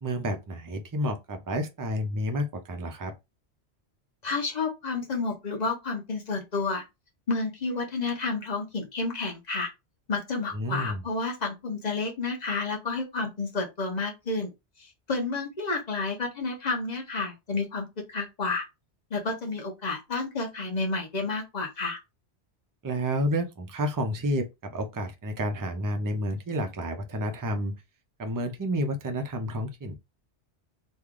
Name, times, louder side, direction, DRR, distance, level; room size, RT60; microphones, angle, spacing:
voice 1, 0.0-3.1 10.5-11.0 22.8-27.8 28.2-29.9, equal, 30° right, 0.3 m, -30 dB
voice 2, 4.2-6.8 7.3-9.7 10.1-14.5 15.1-18.6 19.1-22.0, left 3 dB, 40° left, 0.9 m, -30 dB
3.2 x 2.3 x 3.7 m
omnidirectional pair, 1.1 m